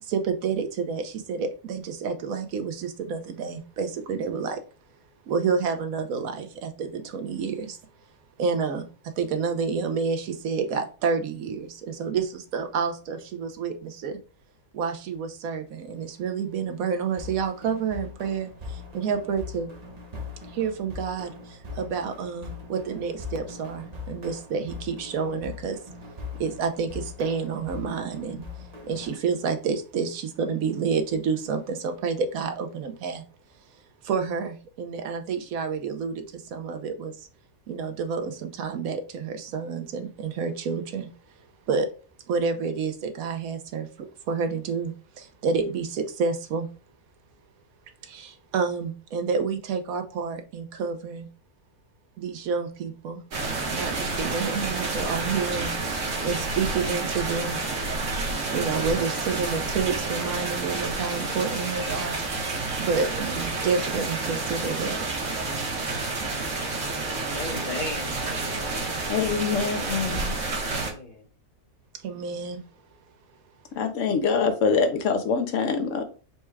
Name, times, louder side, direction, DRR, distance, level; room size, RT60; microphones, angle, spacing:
voice 1, 0.0-4.6 5.3-7.8 8.4-14.2 14.7-19.7 20.5-25.8 26.4-33.2 34.0-37.3 37.7-41.1 41.7-41.9 42.3-43.9 44.3-46.7 48.0-51.3 52.2-53.2 53.7-55.7 56.2-57.6 58.5-62.2 62.8-65.0 72.0-72.6, right 5 dB, 80° right, 1.2 m, -29 dB
sound 1, 17.2-29.2, left 4 dB, 35° right, 0.7 m, -41 dB
sound 2, 53.3-70.9, right 3 dB, 60° right, 1.5 m, -29 dB
voice 2, 67.3-70.1 70.4-71.3, left 2 dB, 40° left, 1.0 m, -38 dB
voice 3, 69.1-70.4 73.7-76.0, left 5 dB, 70° left, 1.0 m, -24 dB
4.3 x 2.3 x 4.6 m
omnidirectional pair, 1.5 m